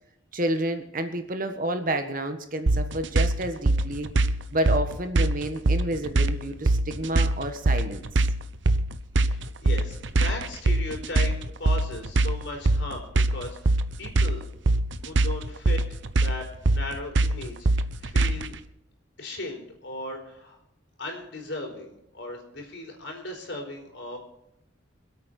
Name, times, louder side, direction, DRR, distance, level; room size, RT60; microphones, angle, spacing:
voice 1, 0.3-4.1 4.5-8.0, right 1 dB, 45° right, 7 dB, 1.5 m, -29 dB
sound 1, 2.7-18.5, right 2 dB, 70° right, 0.8 m, -23 dB
voice 2, 9.3-14.4 15.0-15.8 16.2-18.5 19.2-20.6 21.0-24.2, left 2 dB, 60° left, 2 dB, 4.6 m, -37 dB
26.0 x 8.7 x 4.4 m, 0.80 s
head